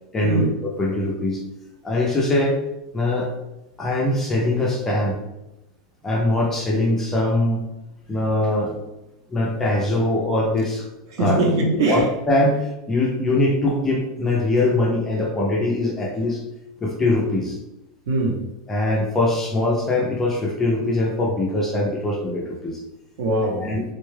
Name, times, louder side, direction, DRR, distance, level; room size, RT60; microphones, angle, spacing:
voice 1, 0.1-1.4 1.8-2.6 2.9-3.3 3.8-5.2 6.0-7.6 8.1-8.8 9.3-10.9 11.2-11.4 11.8-16.4 16.8-17.6 18.7-22.8 23.6-23.8, left 2 dB, 10° left, -2 dB, 0.4 m, -22 dB
voice 2, 11.1-12.1 18.1-18.4 23.2-23.7, right 2 dB, 55° right, 1 dB, 0.7 m, -21 dB
3.7 x 2.2 x 3.2 m, 0.94 s
supercardioid pair, 180°, 3 cm